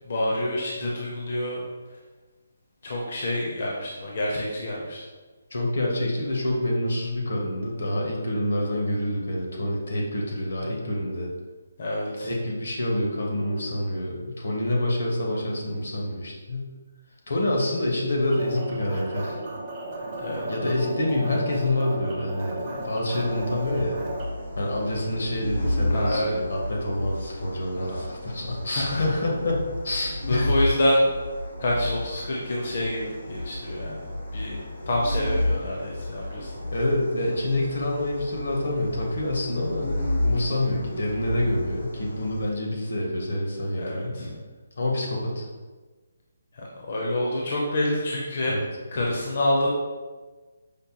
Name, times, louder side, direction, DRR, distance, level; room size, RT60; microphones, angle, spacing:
voice 1, 0.0-1.6 2.8-5.0 11.8-12.3 20.2-20.4 25.9-26.3 27.7-28.0 28.7-29.2 30.3-31.1 31.6-34.1 34.3-34.6 34.9-36.5 43.8-44.3 46.5-48.5 48.9-49.7, left 1 dB, 40° left, -3 dB, 0.5 m, -27 dB
voice 2, 5.5-11.3 12.2-16.7 17.3-19.4 20.5-24.0 24.6-30.5 36.7-44.2 44.8-45.4 48.4-48.6, left 1 dB, 65° left, -1 dB, 0.8 m, -27 dB
sound 1, 18.3-24.2, right 2 dB, 20° right, 0.4 m, -35 dB
sound 2, 23.2-42.4, left 1 dB, 80° left, 1.4 m, -32 dB
5.0 x 2.1 x 2.8 m, 1.3 s
hypercardioid pair, 175°, 0 cm